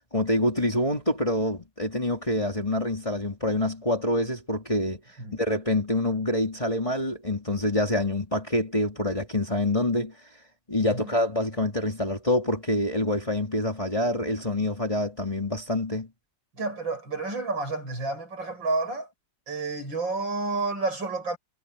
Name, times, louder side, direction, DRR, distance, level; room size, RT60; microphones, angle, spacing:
voice 1, 0.0-5.0 5.3-10.1 10.7-16.1, left 1 dB, 15° left, 3.0 m, -26 dB
voice 2, 16.5-19.1 19.5-21.4, right 3 dB, 65° right, 8.5 m, -30 dB
omnidirectional pair, 2.2 m